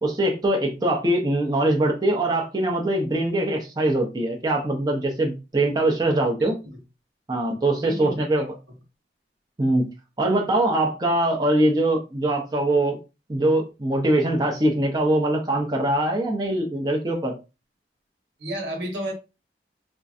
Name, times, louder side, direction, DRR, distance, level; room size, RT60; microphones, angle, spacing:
voice 1, 0.0-6.6 7.3-8.5 9.6-9.8 10.2-13.0 13.3-17.3, right 1 dB, 20° right, 0.6 m, -22 dB
voice 2, 6.4-6.8 7.8-8.5 18.4-19.1, right 1 dB, 75° right, 1.3 m, -32 dB
4.4 x 2.4 x 2.6 m
head